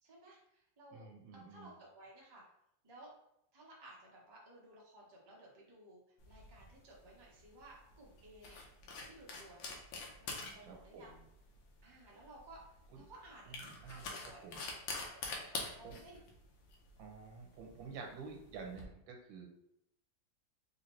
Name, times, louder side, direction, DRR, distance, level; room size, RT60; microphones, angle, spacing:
voice 1, 0.0-1.1 1.3-2.4 2.8-3.1 3.5-6.0 6.3-8.6 9.0-9.7 10.2-11.2 11.8-12.6 12.9-13.6 13.9-14.6 14.9-16.2, right 1 dB, 40° right, -4 dB, 0.3 m, -57 dB
voice 2, 0.9-1.7 10.6-11.2 12.9-13.0 13.5-14.1 14.4-14.7 15.8-16.0 17.0-19.5, right 5 dB, 85° right, 2 dB, 1.5 m, -50 dB
sound 1, 6.2-18.8, left 3 dB, 90° left, 1.4 m, -47 dB
3.6 x 2.8 x 3.0 m, 0.78 s
omnidirectional pair, 2.0 m